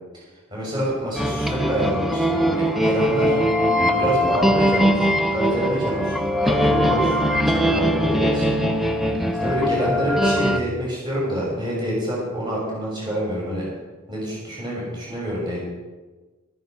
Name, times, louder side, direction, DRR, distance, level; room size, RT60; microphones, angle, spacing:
voice 1, 0.5-3.4 3.9-8.5 9.0-9.1 9.4-13.6 14.1-15.6, equal, 20° right, -4 dB, 6.7 m, -26 dB
sound 1, 1.2-10.6, equal, ahead, 0.8 m, -21 dB
14.5 x 14.0 x 5.4 m, 1.3 s
head